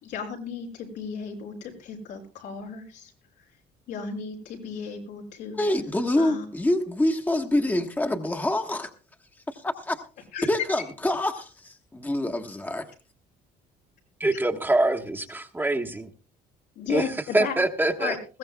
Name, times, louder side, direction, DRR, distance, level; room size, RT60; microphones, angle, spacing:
voice 1, 0.0-3.1 3.9-5.6 6.2-6.4 10.3-10.5 16.7-17.5 18.0-18.4, left 6 dB, 85° left, 4.8 m, -35 dB
voice 2, 5.5-8.9 9.5-10.0 10.4-12.9, left 1 dB, 10° left, 1.3 m, -26 dB
voice 3, 14.2-16.1 16.9-17.0 17.3-18.1, right 2 dB, 10° right, 1.3 m, -24 dB
21.0 x 15.5 x 2.3 m
cardioid pair, 110°, 17 cm